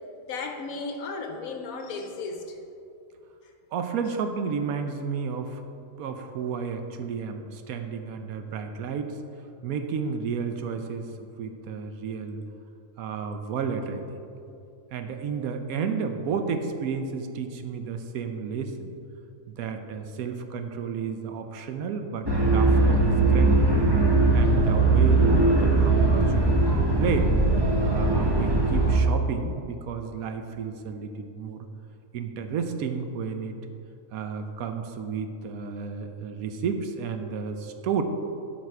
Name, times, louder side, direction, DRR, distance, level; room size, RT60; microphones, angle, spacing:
voice 1, 0.2-2.6, left 3 dB, 65° left, 4 dB, 1.1 m, -35 dB
voice 2, 3.7-5.6 6.0-9.2 9.6-12.4 13.0-14.2 14.9-18.9 19.5-23.7 24.3-27.4 27.8-31.7 32.1-33.6 34.1-38.0, right 6 dB, 70° right, 6 dB, 1.0 m, -32 dB
sound 1, 22.3-29.0, right 2 dB, 20° right, 1.0 m, -20 dB
12.0 x 4.2 x 4.7 m, 2.7 s
omnidirectional pair, 1.7 m